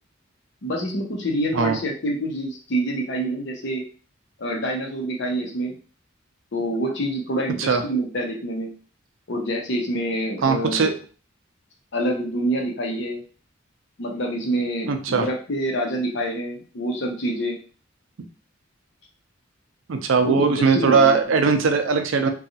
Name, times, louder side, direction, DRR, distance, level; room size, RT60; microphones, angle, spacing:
voice 1, 0.6-3.8 4.4-5.7 6.5-8.7 9.3-10.9 11.9-13.2 14.0-17.6 20.2-21.2, right 1 dB, 60° left, 1 dB, 0.7 m, -26 dB
voice 2, 10.4-11.0 14.8-15.2 19.9-22.3, right 5 dB, 70° right, 7 dB, 0.4 m, -19 dB
2.7 x 2.3 x 2.7 m, 0.39 s
head